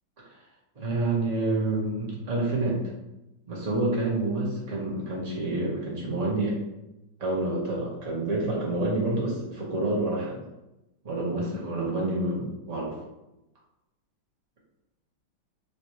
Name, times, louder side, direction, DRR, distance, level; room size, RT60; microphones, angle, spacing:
voice 1, 0.8-2.8 3.5-6.6 7.2-10.4 11.0-12.9, right 2 dB, 50° right, -4 dB, 0.4 m, -28 dB
5.7 x 2.3 x 3.0 m, 0.93 s
omnidirectional pair, 2.4 m